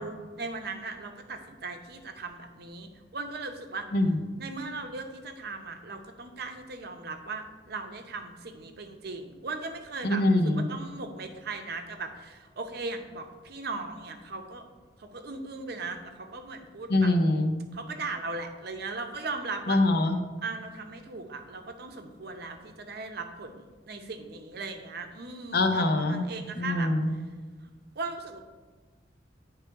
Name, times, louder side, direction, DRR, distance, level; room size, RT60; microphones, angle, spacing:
voice 1, 0.0-3.9 4.4-14.6 15.0-17.1 17.7-19.8 20.4-26.9 28.0-28.4, right 3 dB, 55° right, 5 dB, 0.7 m, -38 dB
voice 2, 10.0-10.6 16.9-17.5 19.7-20.2 25.5-26.3 26.6-27.1, left 2 dB, 55° left, 5 dB, 0.7 m, -24 dB
9.9 x 3.3 x 4.5 m, 1.4 s
head